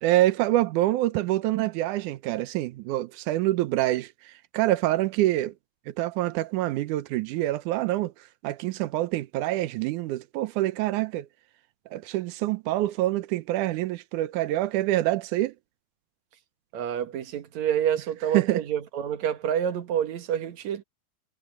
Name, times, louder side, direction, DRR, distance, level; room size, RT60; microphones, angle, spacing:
voice 1, 0.0-5.5 5.9-8.1 8.4-11.3 11.9-15.5 18.3-18.6, right 15 dB, 90° right, 1.8 m, -26 dB
voice 2, 16.7-20.8, right 9 dB, 55° right, 2.3 m, -28 dB
omnidirectional pair, 4.5 m